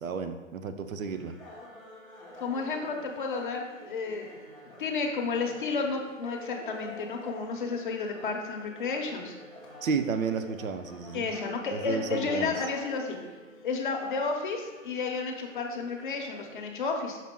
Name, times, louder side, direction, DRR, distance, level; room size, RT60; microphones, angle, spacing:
voice 1, 0.0-1.3 9.8-11.3 11.7-12.5, right 5 dB, 80° right, 9 dB, 0.8 m, -32 dB
sound 1, 1.0-16.6, left 1 dB, ahead, 0.7 m, -47 dB
voice 2, 2.4-4.4 4.8-9.3 11.1-13.2 13.6-17.2, left 4 dB, 40° left, 1 dB, 0.9 m, -32 dB
6.1 x 5.8 x 3.7 m, 1.2 s
hypercardioid pair, 165°, 40 cm